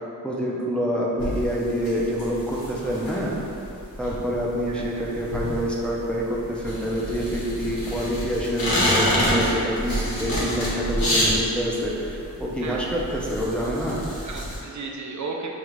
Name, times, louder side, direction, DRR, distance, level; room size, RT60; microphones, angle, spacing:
voice 1, 0.2-3.3 4.0-14.0, equal, 5° left, -5 dB, 0.6 m, -27 dB
sound 1, 1.2-14.6, equal, 90° left, 1.3 m, -28 dB
voice 2, 11.1-11.5 12.6-13.0 14.2-15.5, right 4 dB, 60° right, 0 dB, 0.5 m, -35 dB
6.4 x 2.4 x 3.1 m, 2.8 s
wide cardioid pair, 120°, 33 cm